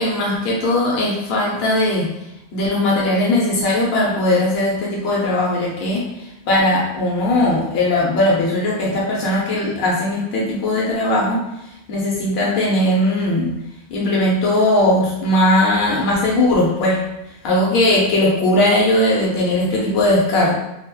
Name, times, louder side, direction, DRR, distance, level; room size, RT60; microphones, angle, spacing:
voice 1, 0.0-2.1 2.5-6.0 6.5-11.4 11.9-13.5 13.9-17.0 17.4-20.5, left 1 dB, 75° left, -4 dB, 0.9 m, -18 dB
2.8 x 2.7 x 2.2 m, 0.89 s
omnidirectional pair, 1.1 m